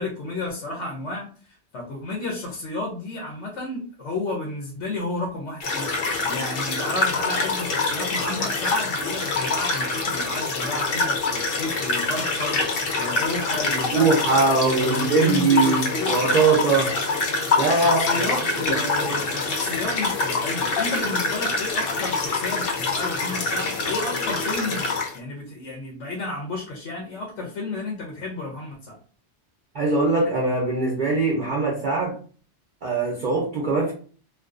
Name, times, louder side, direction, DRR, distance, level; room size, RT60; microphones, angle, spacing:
voice 1, 0.0-5.9 6.2-16.4 17.7-24.8 25.1-29.0, left 2 dB, 85° left, -1 dB, 1.0 m, -32 dB
sound 1, 5.6-25.2, left 3 dB, 60° left, 0.7 m, -25 dB
voice 2, 13.9-16.9 17.6-18.4 18.8-19.2 29.7-32.1 32.8-33.9, right 3 dB, 50° right, -3 dB, 0.6 m, -22 dB
2.5 x 2.3 x 2.4 m, 0.42 s
omnidirectional pair, 1.2 m